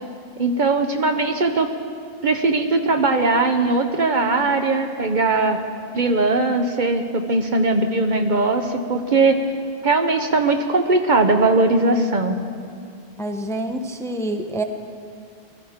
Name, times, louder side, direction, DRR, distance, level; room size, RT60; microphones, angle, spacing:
voice 1, 0.4-1.7 2.2-5.6 5.9-9.4 9.8-12.4, right 3 dB, 55° right, 5 dB, 0.8 m, -19 dB
voice 2, 13.2-14.6, right 1 dB, 5° left, 5 dB, 0.5 m, -27 dB
21.0 x 13.0 x 3.6 m, 2.3 s
omnidirectional pair, 1.0 m